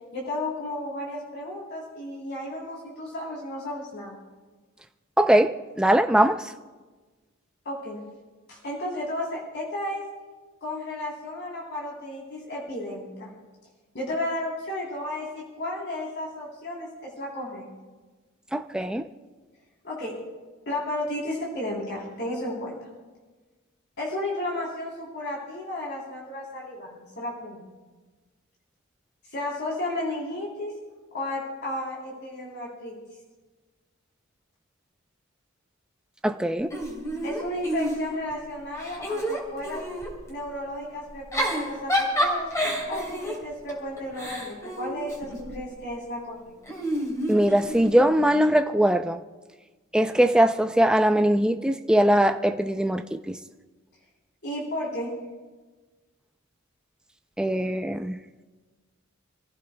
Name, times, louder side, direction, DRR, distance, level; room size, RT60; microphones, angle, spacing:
voice 1, 0.1-4.2 7.6-8.0 8.5-10.0 10.6-13.3 13.9-17.6 19.8-20.1 20.6-22.8 24.0-27.7 29.3-30.7 31.1-33.0 37.2-39.8 40.3-42.5 42.9-46.4 54.4-55.1, left 1 dB, 60° left, -4 dB, 3.4 m, -33 dB
voice 2, 5.2-6.4 18.5-19.0 36.2-36.7 47.3-49.2 49.9-53.4 57.4-58.2, right 1 dB, 5° right, 7 dB, 0.4 m, -21 dB
Giggle / Chuckle chortle, 36.7-38.3 38.7-40.1 41.1-45.6 46.7-48.1, equal, 15° left, 3.1 m, -29 dB
27.5 x 15.0 x 2.2 m, 1.3 s
head